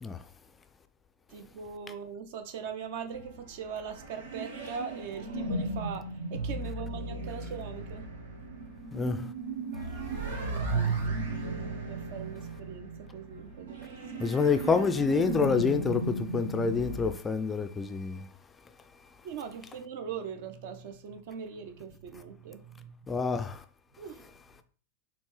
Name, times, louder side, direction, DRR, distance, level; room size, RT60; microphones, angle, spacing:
voice 1, 1.3-8.1 10.3-11.2 11.9-14.2 19.2-23.2 24.0-24.3, right 7 dB, 50° right, 0.6 m, -41 dB
sound 1, 3.1-17.1, right 3 dB, 70° right, 1.1 m, -36 dB
voice 2, 8.9-9.3 14.2-18.3 23.1-23.6, left 5 dB, 15° left, 0.3 m, -27 dB
4.3 x 2.9 x 3.2 m
figure-of-eight pair, 90°, 0 cm